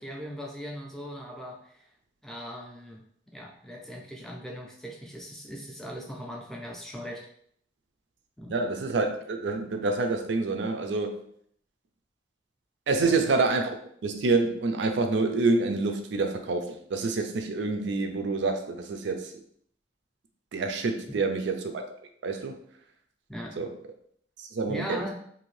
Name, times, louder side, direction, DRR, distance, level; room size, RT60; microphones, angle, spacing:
voice 1, 0.0-1.9 2.2-3.0 3.3-7.3 8.4-8.5 13.0-13.2 21.1-21.2 23.3-23.6 24.7-25.1, equal, ahead, -1 dB, 0.4 m, -39 dB
voice 2, 8.5-11.2 12.9-13.7 14.0-19.3 20.5-21.8 22.2-22.6 23.6-23.7 24.4-25.0, right 3 dB, 80° right, 5 dB, 0.4 m, -27 dB
2.8 x 2.6 x 3.1 m, 0.65 s
head